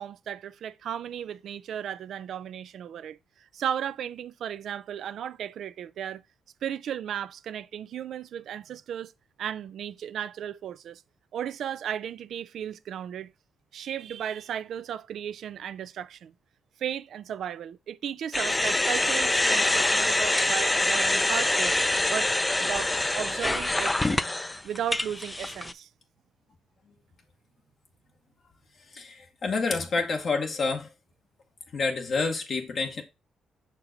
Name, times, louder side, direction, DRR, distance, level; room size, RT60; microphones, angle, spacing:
voice 1, 0.0-3.2 3.5-6.2 6.6-9.1 9.4-11.0 11.3-13.3 13.7-16.3 16.8-21.7 22.1-22.3 22.6-24.0 24.6-25.9, right 9 dB, 70° right, 0.3 m, -35 dB
sound 1, 18.3-25.7, left 2 dB, 20° left, 0.5 m, -25 dB
voice 2, 28.9-30.9 31.7-33.0, left 4 dB, 60° left, 1.0 m, -28 dB
5.7 x 4.4 x 3.8 m
supercardioid pair, 65°, 0 cm